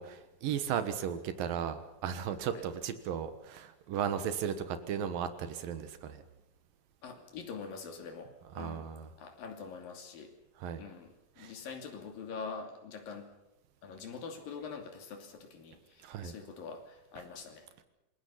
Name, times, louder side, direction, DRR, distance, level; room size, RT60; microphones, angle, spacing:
voice 1, 0.0-6.2 8.6-9.1 10.6-10.8 11.4-11.5 16.0-16.3, right 8 dB, 85° right, 10 dB, 3.1 m, -35 dB
voice 2, 7.0-8.9 9.2-10.3 10.8-13.3 13.8-17.7, left 5 dB, 85° left, 5 dB, 4.5 m, -44 dB
26.0 x 21.5 x 5.7 m, 0.95 s
omnidirectional pair, 3.9 m